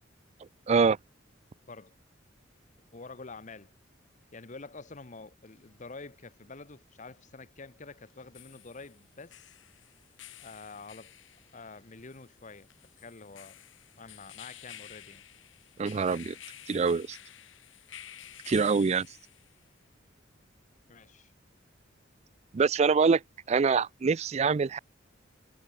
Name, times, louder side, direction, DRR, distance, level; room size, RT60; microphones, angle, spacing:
voice 1, 1.6-2.0 2.9-3.7 4.3-9.5 10.4-11.1 11.5-12.7 13.0-13.6 14.0-15.3 18.6-18.9 20.9-21.3, left 3 dB, 40° left, 1.1 m, -47 dB
sound 1, 5.5-5.6 8.1-19.7, left 12 dB, 80° left, 1.7 m, -51 dB
voice 2, 15.8-16.4 16.7-17.2 18.5-19.1 22.5-23.2 23.5-24.8, right 5 dB, 35° right, 0.4 m, -24 dB
head